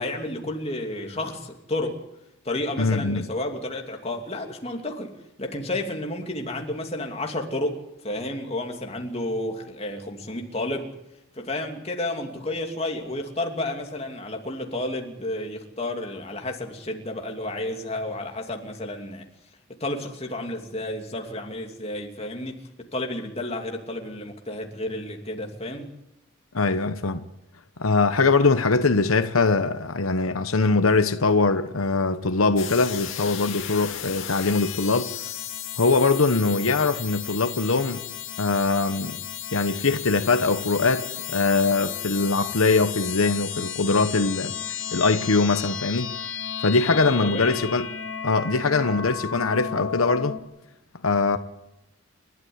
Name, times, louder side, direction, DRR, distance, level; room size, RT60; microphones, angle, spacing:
voice 1, 0.0-1.9 2.4-5.1 5.4-7.8 8.0-10.9 11.3-19.3 19.8-22.5 22.9-25.9 46.8-47.6, left 1 dB, 30° left, 2.8 m, -31 dB
voice 2, 2.8-3.3 26.5-27.2 27.8-35.1 35.8-38.0 38.4-39.2 39.5-44.5 44.9-46.2 46.6-47.9 48.2-50.3 51.0-51.4, left 3 dB, 90° left, 1.1 m, -22 dB
sound 1, 32.6-50.4, left 9 dB, 70° left, 2.1 m, -34 dB
30.0 x 12.5 x 9.6 m
head